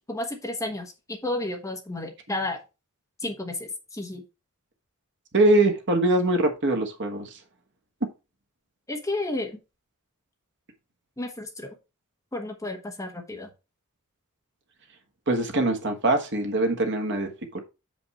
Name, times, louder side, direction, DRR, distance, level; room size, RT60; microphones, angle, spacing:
voice 1, 0.1-2.6 3.2-4.2 8.9-9.6 11.2-11.7 12.3-13.5, left 2 dB, 15° left, 1.2 m, -32 dB
voice 2, 5.3-7.3 15.3-17.6, right 2 dB, 55° right, 1.4 m, -23 dB
7.0 x 5.3 x 4.2 m
head